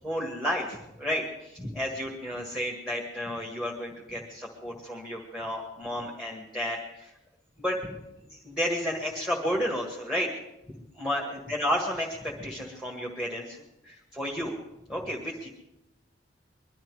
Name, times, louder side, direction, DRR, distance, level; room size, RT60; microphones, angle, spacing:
voice 1, 0.0-7.1 7.6-7.8 8.3-10.3 11.0-14.6 14.9-15.5, equal, 5° right, -1 dB, 1.6 m, -32 dB
21.5 x 12.0 x 4.8 m, 0.92 s
head